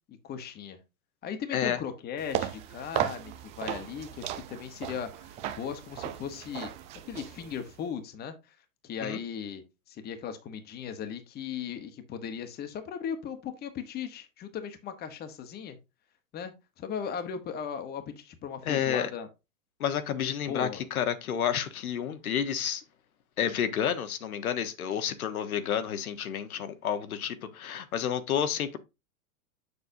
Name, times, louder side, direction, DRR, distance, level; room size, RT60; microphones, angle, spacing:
voice 1, 0.1-0.8 1.2-6.7 7.1-8.6 8.8-9.6 9.9-15.8 16.3-16.5 16.8-19.3 20.5-20.8, left 7 dB, 20° left, 1.1 m, -37 dB
sound 1, 2.2-7.8, right 11 dB, 15° right, 0.3 m, -36 dB
voice 2, 18.6-19.1 19.8-22.8 23.4-28.8, left 9 dB, 80° left, 1.2 m, -30 dB
6.8 x 6.7 x 2.7 m
hypercardioid pair, 125°, 42 cm